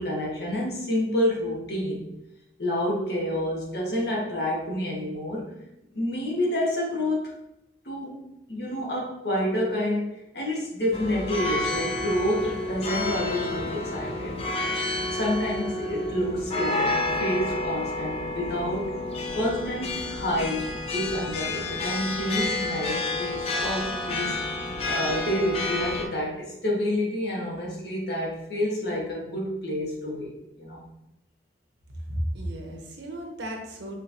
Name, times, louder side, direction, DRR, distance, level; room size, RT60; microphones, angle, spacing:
voice 1, 0.0-2.0 2.6-5.5 5.9-7.3 7.8-8.2 8.5-14.4 14.8-19.0 19.3-24.4 24.9-30.8, left 1 dB, 70° left, -3 dB, 1.4 m, -29 dB
sound 1, 10.9-26.0, left 2 dB, 35° left, 0.5 m, -30 dB
voice 2, 32.1-34.0, equal, 85° right, 2 dB, 0.9 m, -33 dB
5.6 x 3.2 x 2.7 m, 0.88 s
head